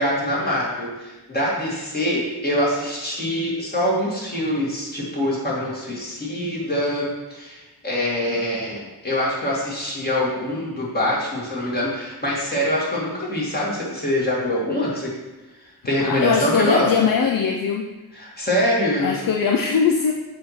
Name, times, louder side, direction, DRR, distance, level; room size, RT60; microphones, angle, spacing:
voice 1, 0.0-15.1 15.8-16.9 18.2-19.1, left 1 dB, 25° left, -6 dB, 2.2 m, -24 dB
voice 2, 16.0-17.9 19.0-20.1, left 6 dB, 60° left, 2 dB, 0.6 m, -21 dB
7.5 x 2.9 x 5.8 m, 1.1 s
wide cardioid pair, 100°, 38 cm